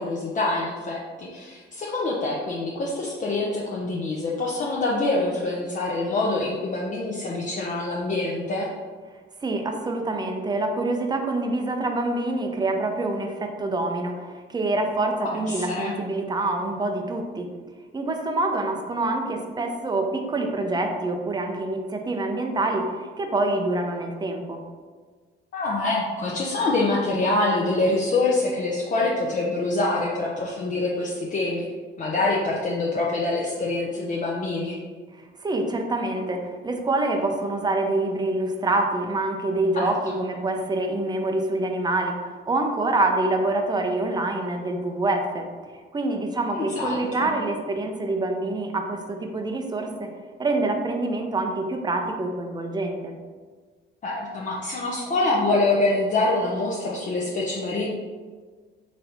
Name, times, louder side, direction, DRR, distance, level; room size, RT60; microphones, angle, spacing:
voice 1, 0.0-8.7 15.2-15.9 25.5-31.7 32.0-34.8 39.7-40.2 46.5-47.3 54.0-57.9, left 2 dB, 40° left, -3 dB, 0.6 m, -25 dB
voice 2, 9.4-17.5 17.9-24.6 35.4-45.5 45.9-50.1 50.4-53.1, right 2 dB, 20° right, 4 dB, 0.5 m, -26 dB
4.1 x 3.3 x 2.8 m, 1.5 s
cardioid pair, 90°, 20 cm